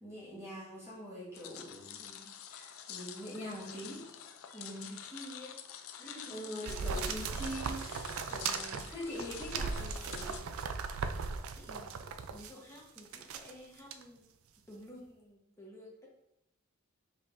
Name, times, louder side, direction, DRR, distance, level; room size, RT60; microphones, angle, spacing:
voice 1, 0.0-4.1 4.5-4.9 6.3-10.4, equal, 15° right, -9 dB, 1.6 m, -44 dB
sound 1, 1.3-10.4, left 9 dB, 75° left, 0.4 m, -48 dB
voice 2, 4.7-5.6 6.0-6.8 11.5-14.2 14.7-16.1, equal, 15° left, -2 dB, 1.0 m, -52 dB
sound 2, 6.7-12.5 13.0-13.5 13.9-14.0, right 5 dB, 80° right, 0.4 m, -38 dB
5.2 x 3.9 x 2.5 m, 0.87 s
head